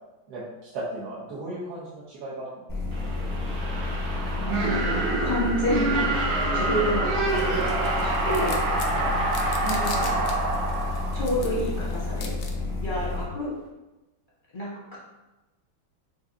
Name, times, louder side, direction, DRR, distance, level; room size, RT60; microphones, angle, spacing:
voice 1, 0.3-2.5 8.9-9.1, right 1 dB, 60° right, -8 dB, 1.2 m, -36 dB
sound 1, 2.7-13.2, left 3 dB, 5° left, 0.5 m, -30 dB
sound 2, 2.9-11.8, right 3 dB, 80° right, 1.6 m, -27 dB
voice 2, 4.4-8.6 9.6-10.1 11.1-12.3 12.8-13.5 14.5-15.0, equal, 40° left, -7 dB, 0.7 m, -30 dB
sound 3, 7.3-12.5, left 5 dB, 90° left, 0.8 m, -42 dB
6.1 x 2.6 x 2.6 m, 1.1 s
omnidirectional pair, 2.2 m